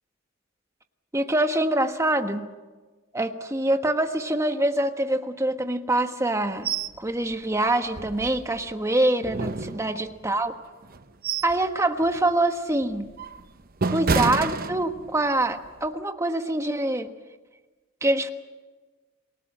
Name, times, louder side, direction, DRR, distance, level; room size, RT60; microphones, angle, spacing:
voice 1, 1.1-2.5 3.1-6.7 7.0-10.5 11.4-13.1 13.9-17.1 18.0-18.3, right 1 dB, 15° right, 7 dB, 1.4 m, -25 dB
sound 1, 6.6-7.0 7.3-7.4 7.9-8.7 9.2-10.2 10.8-11.6 12.0-12.3 12.8-15.3 15.6-15.9, right 4 dB, 45° right, 0.9 m, -29 dB
27.5 x 18.5 x 7.5 m, 1.3 s
head